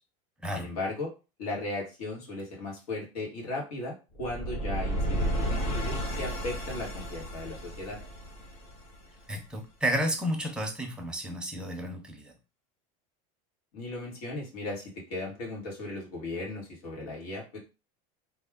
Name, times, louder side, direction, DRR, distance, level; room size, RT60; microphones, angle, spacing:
voice 1, 0.5-1.1 1.4-8.0 13.7-17.6, left 2 dB, 90° left, -2 dB, 2.0 m, -36 dB
sound 1, 4.1-9.2, equal, 35° left, 0.9 m, -32 dB
voice 2, 9.3-12.4, right 1 dB, 5° right, 2 dB, 0.5 m, -32 dB
3.3 x 2.4 x 3.6 m, 0.30 s
supercardioid pair, 160°, 19 cm